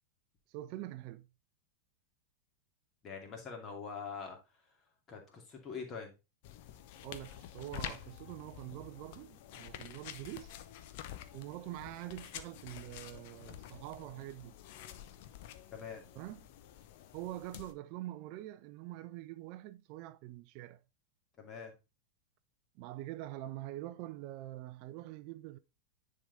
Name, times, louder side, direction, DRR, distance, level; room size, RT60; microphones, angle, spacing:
voice 1, 0.5-1.3 7.0-10.5 11.3-14.6 16.2-16.4 17.1-20.8 22.8-25.6, right 15 dB, 45° right, 0.4 m, -45 dB
voice 2, 3.0-4.8 5.1-6.1 15.7-16.0 21.4-21.7, left 5 dB, 30° left, 2.3 m, -44 dB
sound 1, 6.4-17.7, left 11 dB, 50° left, 0.7 m, -49 dB
10.0 x 3.8 x 3.9 m
figure-of-eight pair, 90°, 0 cm